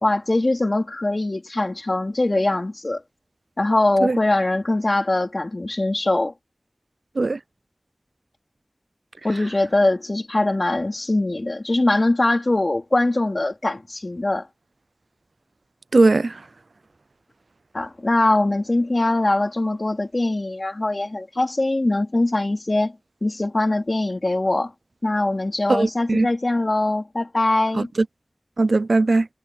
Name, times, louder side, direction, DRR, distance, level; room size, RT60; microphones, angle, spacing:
voice 1, 0.0-3.0 3.6-6.3 9.2-14.5 17.7-23.0 23.2-24.7 25.0-27.9, left 2 dB, 50° left, 4.1 m, -22 dB
voice 2, 15.9-16.4 25.7-26.3 27.8-27.9 28.6-29.3, right 3 dB, 85° right, 0.5 m, -19 dB
wide cardioid pair, 45°, 0 cm